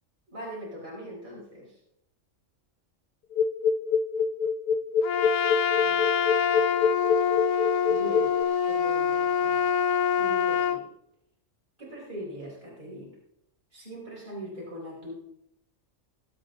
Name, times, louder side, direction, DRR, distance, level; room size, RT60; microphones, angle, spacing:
voice 1, 0.3-1.7 5.8-6.0 7.9-8.3 8.7-9.6 10.1-10.9 11.8-13.1 13.7-15.1, equal, 35° right, -6 dB, 5.1 m, -40 dB
sound 1, 3.3-8.4, left 6 dB, 60° left, 0.6 m, -25 dB
Trumpet, 5.0-10.8, left 8 dB, 85° left, 1.3 m, -25 dB
21.5 x 8.0 x 3.9 m, 0.77 s
omnidirectional pair, 1.3 m